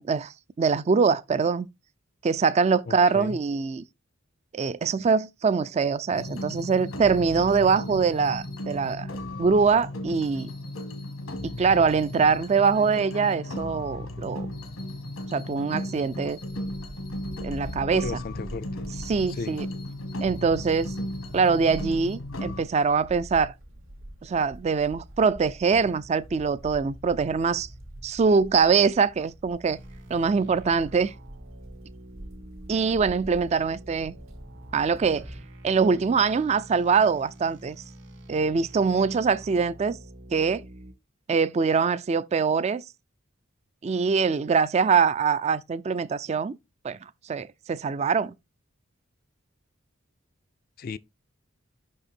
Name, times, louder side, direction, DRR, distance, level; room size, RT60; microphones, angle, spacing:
voice 1, 0.0-1.7 2.2-3.8 4.5-9.1 9.4-10.5 11.4-14.5 15.3-16.4 17.4-18.1 19.1-19.7 20.2-20.9 21.3-23.5 24.2-27.7 28.0-29.8 30.1-31.1 32.7-34.2 34.7-35.3 35.6-37.8 38.3-40.0 40.3-40.6 41.3-42.8 43.8-46.6 46.8-47.0 47.3-48.3, right 5 dB, 30° right, 0.3 m, -23 dB
voice 2, 2.9-3.4 18.0-18.7 19.3-19.6 50.8-51.0, left 4 dB, 45° left, 0.4 m, -34 dB
sound 1, 6.1-22.6, left 1 dB, 90° left, 1.6 m, -36 dB
sound 2, 16.0-35.4, right 1 dB, 85° right, 2.0 m, -45 dB
sound 3, 29.7-40.9, right 1 dB, 60° right, 1.7 m, -46 dB
5.8 x 5.3 x 4.3 m
head